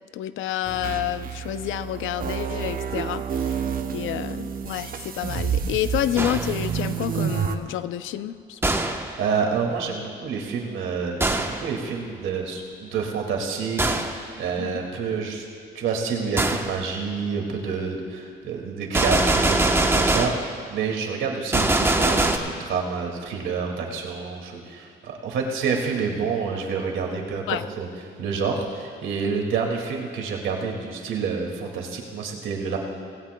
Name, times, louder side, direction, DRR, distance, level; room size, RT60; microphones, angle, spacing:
voice 1, 0.1-3.6 3.9-8.6 14.6-14.8 27.5-27.6, left 12 dB, 80° left, 13 dB, 0.5 m, -29 dB
sound 1, 0.6-7.6, right 7 dB, 45° right, 0.9 m, -29 dB
Gunshot gunfire, 6.2-6.7 8.6-9.1 11.2-11.7 13.8-14.2 16.4-16.7 18.9-20.5 21.5-22.4, right 2 dB, 10° right, 0.9 m, -22 dB
voice 2, 9.2-15.5 15.7-27.9 28.2-32.8, right 5 dB, 80° right, 1 dB, 2.2 m, -28 dB
19.0 x 16.5 x 2.2 m, 2.3 s
cardioid pair, 90°, 20 cm